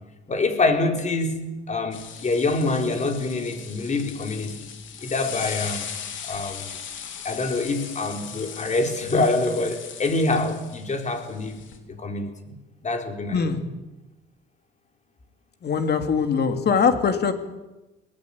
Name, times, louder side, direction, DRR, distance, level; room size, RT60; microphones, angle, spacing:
voice 1, 0.3-4.7 5.0-5.9 6.2-6.8 7.2-11.6 11.9-13.5, left 2 dB, 35° left, 4 dB, 4.3 m, -26 dB
sound 1, 1.9-11.8, left 8 dB, 75° left, 3.6 m, -38 dB
voice 2, 15.6-17.3, left 6 dB, 55° left, 6 dB, 3.1 m, -22 dB
23.5 x 19.0 x 8.8 m, 1.0 s
cardioid pair, 90°, 20 cm